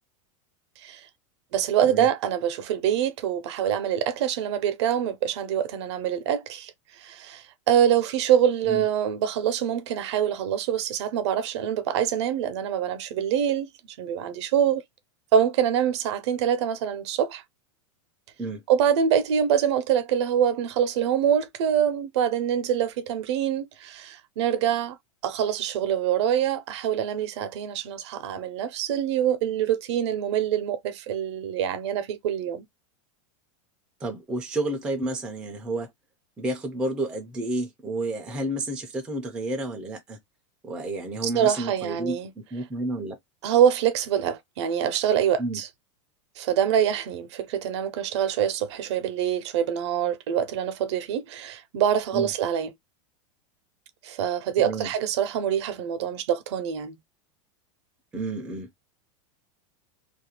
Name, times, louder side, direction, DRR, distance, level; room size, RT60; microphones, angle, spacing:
voice 1, 1.5-6.7 7.0-13.7 14.0-14.8 15.3-17.4 18.7-25.0 25.2-32.7 41.2-42.3 43.4-45.7 46.4-52.7 54.0-56.9, right 9 dB, 60° right, 0.5 m, -25 dB
voice 2, 34.0-35.9 36.4-40.2 40.6-43.2 45.4-45.6 52.1-52.3 54.6-54.9 58.1-58.7, right 2 dB, 5° right, 0.3 m, -30 dB
2.4 x 2.1 x 2.8 m
supercardioid pair, 170°, 16 cm